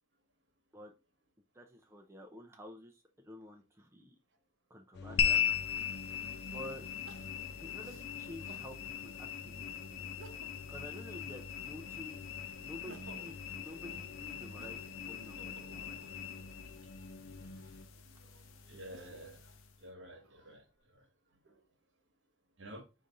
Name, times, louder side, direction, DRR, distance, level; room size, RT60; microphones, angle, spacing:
voice 1, 1.5-4.2 4.7-5.4 6.5-6.8 7.6-10.1 10.7-12.2 12.6-16.4, left 1 dB, 15° right, 0.4 m, -50 dB
sound 1, 4.9-17.8, left 3 dB, 55° left, 0.4 m, -50 dB
sound 2, 5.2-19.8, left 9 dB, 90° left, 0.7 m, -39 dB
Crying sobbing, 7.1-8.7 9.3-9.4 10.0-10.7 11.1-12.1 12.6-16.6 17.3-19.4 20.0-20.8, right 3 dB, 80° right, 0.7 m, -58 dB
voice 2, 18.7-19.5 19.8-20.6 21.4-21.5 22.6-22.8, right 1 dB, 65° right, 1.2 m, -49 dB
5.0 x 2.6 x 4.0 m
head